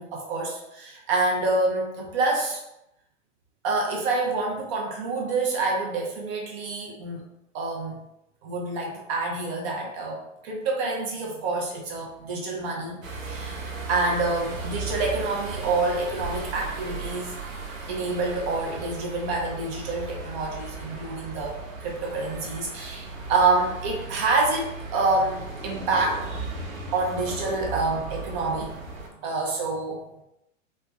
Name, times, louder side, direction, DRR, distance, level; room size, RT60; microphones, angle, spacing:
voice 1, 0.0-2.6 3.6-7.2 7.5-8.0 8.4-17.3 17.9-26.5 26.9-28.8 29.2-30.0, right 3 dB, 25° right, -1 dB, 0.3 m, -27 dB
sound 1, 13.0-29.1, right 3 dB, 90° right, 0.7 m, -36 dB
3.0 x 2.0 x 2.2 m, 0.86 s
hypercardioid pair, 110°, 39 cm